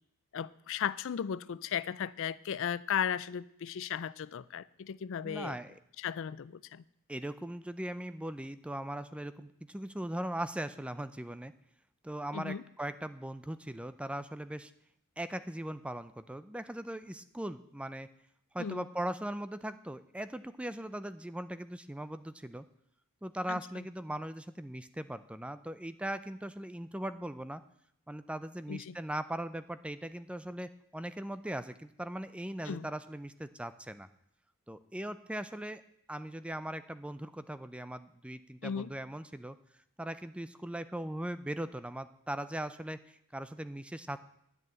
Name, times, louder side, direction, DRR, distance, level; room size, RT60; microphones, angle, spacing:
voice 1, 0.3-5.5 6.0-6.8 12.3-12.6 18.6-18.8 23.5-23.6 28.7-29.0 32.7-32.9 38.6-38.9, left 8 dB, 60° left, 19 dB, 0.4 m, -36 dB
voice 2, 5.2-5.8 7.1-11.5 12.0-14.7 15.2-18.1 18.5-22.6 23.2-27.6 28.1-34.1 34.7-35.8 36.1-39.6 40.0-44.2, right 1 dB, 5° right, 13 dB, 0.4 m, -39 dB
11.0 x 6.7 x 8.8 m, 0.73 s
head